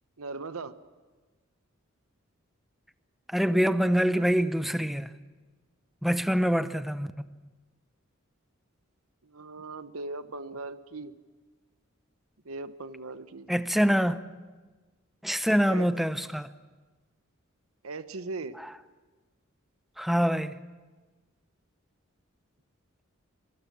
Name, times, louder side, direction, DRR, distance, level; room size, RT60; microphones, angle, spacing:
voice 1, 0.2-0.8 9.2-11.1 12.4-13.5 15.6-15.9 17.8-18.6, right 3 dB, 85° right, 1.0 m, -38 dB
voice 2, 3.3-5.1 6.0-7.1 13.5-14.2 15.2-16.5 20.0-20.5, equal, ahead, 0.7 m, -25 dB
27.5 x 21.0 x 7.2 m
head